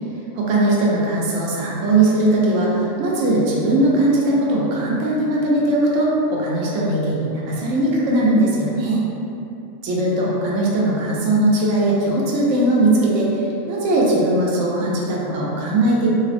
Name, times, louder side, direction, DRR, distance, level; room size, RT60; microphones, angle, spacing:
voice 1, 0.4-9.0 9.8-16.1, right 1 dB, 75° right, -5 dB, 0.9 m, -19 dB
3.3 x 2.0 x 2.4 m, 2.8 s
omnidirectional pair, 1.4 m